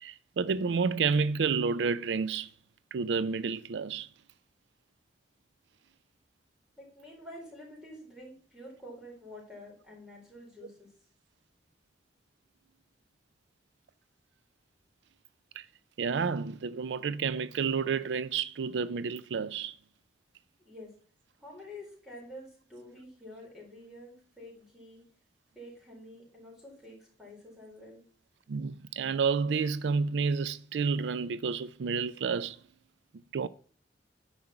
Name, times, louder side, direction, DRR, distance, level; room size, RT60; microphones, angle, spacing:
voice 1, 0.0-2.5 2.9-4.1 15.6-15.7 16.0-19.8 28.5-32.6 33.3-33.5, right 5 dB, 75° right, 0.4 m, -30 dB
voice 2, 6.8-10.9 20.6-20.9 21.4-25.1 25.5-28.0, left 1 dB, 5° right, 4.3 m, -48 dB
9.5 x 5.3 x 5.8 m
head